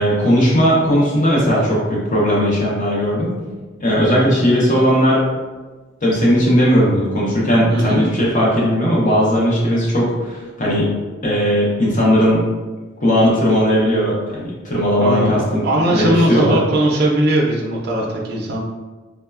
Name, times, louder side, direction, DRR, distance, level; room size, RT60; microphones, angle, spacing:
voice 1, 0.0-3.4 3.8-5.2 6.0-10.9 11.2-12.4 13.0-16.6, equal, 45° left, -5 dB, 0.7 m, -17 dB
voice 2, 7.7-8.0 15.0-18.6, right 1 dB, 60° right, -2 dB, 0.4 m, -19 dB
3.0 x 2.1 x 2.3 m, 1.3 s
head